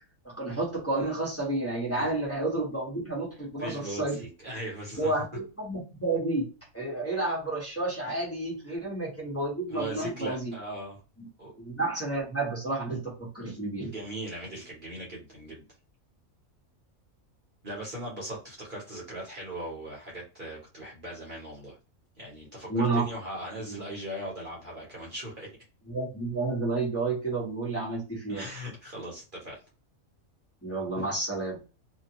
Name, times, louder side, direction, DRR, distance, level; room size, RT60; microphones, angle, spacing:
voice 1, 0.2-4.2 5.0-6.5 6.7-10.5 11.2-11.3 11.6-13.9 22.7-23.0 23.7-23.8 25.9-28.5 30.6-31.6, right 2 dB, 10° left, -5 dB, 1.3 m, -30 dB
voice 2, 3.6-5.1 9.7-11.0 11.4-11.5 13.9-15.6 17.6-21.7 22.2-25.5 28.3-29.6, right 1 dB, 40° right, -3 dB, 1.2 m, -39 dB
2.8 x 2.7 x 2.8 m, 0.31 s
omnidirectional pair, 1.4 m